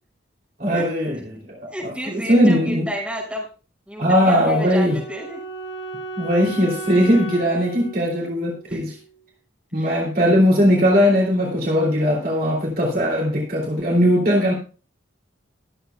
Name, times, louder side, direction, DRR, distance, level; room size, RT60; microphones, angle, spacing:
voice 1, 0.6-1.7 2.1-2.9 4.0-5.0 6.2-9.0 9.7-14.5, equal, 45° right, -2 dB, 3.0 m, -19 dB
voice 2, 1.7-3.5 3.9-5.4 8.7-8.8 9.7-10.1, equal, 5° right, -4 dB, 6.0 m, -31 dB
Wind instrument woodwind instrument, 4.2-9.2, right 3 dB, 80° left, 1.7 m, -35 dB
22.0 x 8.1 x 2.3 m, 0.36 s
head